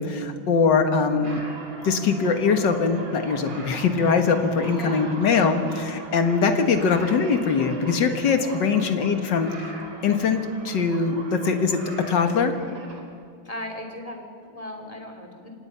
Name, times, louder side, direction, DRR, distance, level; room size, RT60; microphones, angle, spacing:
voice 1, 0.0-1.4 1.8-9.5 10.0-11.8 12.1-12.5, left 5 dB, 65° left, 7 dB, 2.1 m, -22 dB
sound 1, 1.2-13.0, right 2 dB, 80° right, 3.7 m, -40 dB
voice 2, 4.7-5.0 8.4-8.6 13.4-15.5, left 1 dB, 15° left, 2 dB, 2.9 m, -37 dB
25.5 x 18.5 x 5.7 m, 2.3 s
omnidirectional pair, 2.1 m